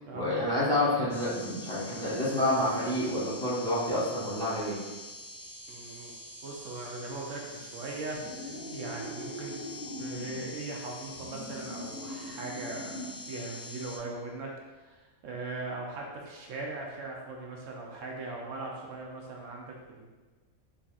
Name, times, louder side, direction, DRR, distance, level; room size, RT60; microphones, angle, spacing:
voice 1, 0.1-4.8, left 1 dB, 5° left, -10 dB, 0.9 m, -28 dB
sound 1, 1.1-14.0, left 2 dB, 70° left, 1.0 m, -45 dB
voice 2, 5.7-9.6 10.0-20.1, right 2 dB, 85° right, -1 dB, 1.0 m, -40 dB
sound 2, 8.1-10.4 11.0-13.2, equal, 20° right, 0.7 m, -42 dB
4.0 x 3.3 x 2.4 m, 1.2 s
omnidirectional pair, 1.3 m